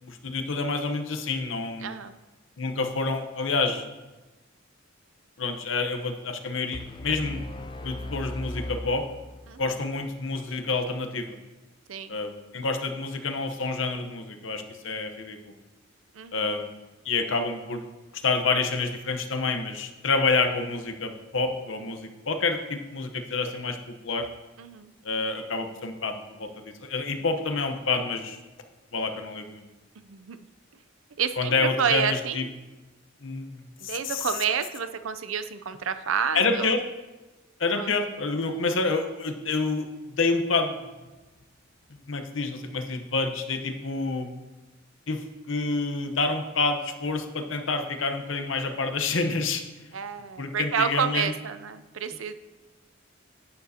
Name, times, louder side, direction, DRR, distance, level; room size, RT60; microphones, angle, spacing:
voice 1, 0.0-1.9 2.6-3.9 5.4-7.4 7.8-9.0 9.6-11.4 12.1-15.5 16.3-16.7 17.0-17.8 18.2-24.3 25.0-28.4 28.9-29.6 31.4-32.5 33.2-34.3 36.3-36.8 37.6-40.8 42.1-44.3 45.1-49.6 50.4-51.3, left 3 dB, 70° left, 6 dB, 0.9 m, -28 dB
voice 2, 1.8-2.2 9.5-9.6 11.9-12.2 16.1-16.5 24.6-24.9 30.0-30.4 31.2-32.5 33.8-36.8 37.8-37.9 49.9-52.3, right 7 dB, 80° right, 11 dB, 0.5 m, -29 dB
sound 1, 6.7-9.8, left 1 dB, 25° left, 0.4 m, -37 dB
11.0 x 9.3 x 2.8 m, 1.2 s
head